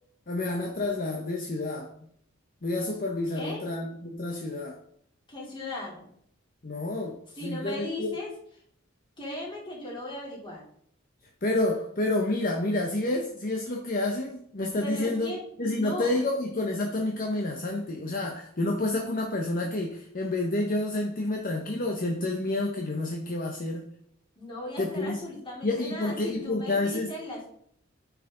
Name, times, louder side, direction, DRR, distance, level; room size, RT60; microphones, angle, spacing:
voice 1, 0.3-1.9 2.6-4.8 6.6-8.2 11.4-15.3 15.6-23.9 24.8-25.2 25.6-27.1, left 2 dB, 45° left, 2 dB, 1.0 m, -29 dB
voice 2, 3.3-3.7 5.3-6.1 7.4-8.3 9.2-10.6 14.8-16.2 24.4-27.5, left 1 dB, 25° left, -4 dB, 3.3 m, -37 dB
9.3 x 5.9 x 3.8 m, 0.67 s
head